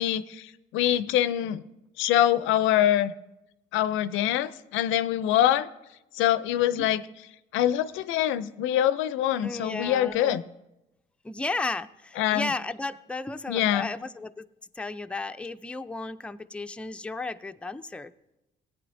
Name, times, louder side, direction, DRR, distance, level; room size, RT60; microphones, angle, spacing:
voice 1, 0.0-1.6 2.0-3.1 3.7-5.7 6.1-7.0 7.5-10.4 12.2-12.5 13.5-13.9, left 12 dB, 75° left, 15 dB, 0.5 m, -24 dB
voice 2, 9.4-10.4 11.2-14.5 14.8-18.1, left 3 dB, 5° left, 9 dB, 0.4 m, -34 dB
16.5 x 8.8 x 2.6 m, 0.93 s
supercardioid pair, 65°, 20 cm